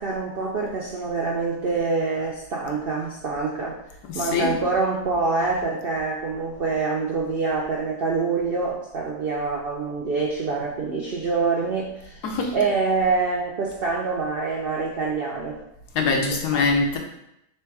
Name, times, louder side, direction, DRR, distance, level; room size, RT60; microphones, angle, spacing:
voice 1, 0.0-3.8 4.1-15.6 16.3-16.7, right 4 dB, 80° right, -2 dB, 0.5 m, -26 dB
voice 2, 4.1-4.5 12.2-12.7 15.9-17.0, left 4 dB, 75° left, 2 dB, 1.3 m, -23 dB
3.4 x 3.3 x 4.6 m, 0.82 s
omnidirectional pair, 1.7 m